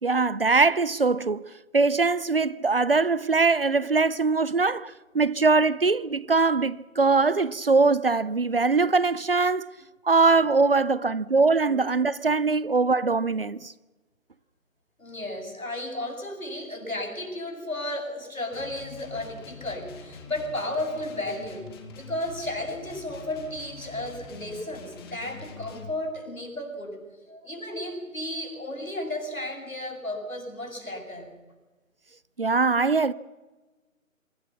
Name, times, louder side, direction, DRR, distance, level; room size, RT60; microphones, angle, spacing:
voice 1, 0.0-9.7 10.0-13.7 32.4-33.1, right 4 dB, 45° right, 0.7 m, -22 dB
voice 2, 15.0-21.7 22.0-27.0 27.3-31.3, left 1 dB, 80° left, 7.9 m, -34 dB
sound 1, 18.5-25.9, left 4 dB, 15° left, 2.4 m, -44 dB
27.0 x 23.5 x 5.9 m
figure-of-eight pair, 150°, 41 cm